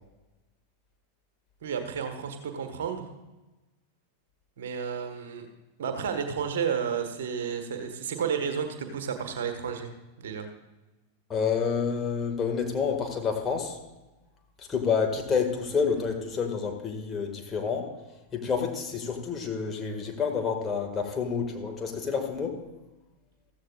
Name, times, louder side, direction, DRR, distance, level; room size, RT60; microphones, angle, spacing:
voice 1, 1.6-3.1 4.6-5.5 5.8-9.9 10.2-10.5, right 7 dB, 60° right, 6 dB, 1.5 m, -31 dB
voice 2, 11.3-13.8 14.6-17.9 18.3-22.6, left 6 dB, 20° left, 2 dB, 1.9 m, -29 dB
14.5 x 14.5 x 2.4 m, 1.1 s
figure-of-eight pair, 90°, 0 cm